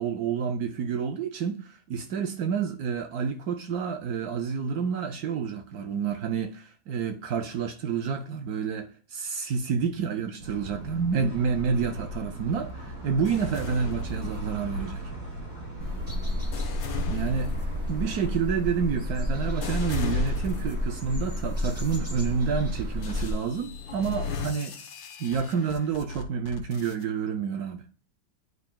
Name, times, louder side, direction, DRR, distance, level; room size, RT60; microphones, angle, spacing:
voice 1, 0.0-15.0 17.1-17.5 17.9-24.8 25.2-27.8, right 6 dB, 65° right, 1.0 m, -29 dB
sound 1, 10.4-18.3, right 1 dB, 50° right, 4.0 m, -39 dB
sound 2, 13.3-14.8 15.5-21.0 21.6-22.0 23.0-27.0, left 3 dB, 75° left, 1.7 m, -36 dB
sound 3, 15.8-23.3, left 1 dB, 5° right, 3.4 m, -31 dB
10.5 x 4.9 x 2.2 m
omnidirectional pair, 2.1 m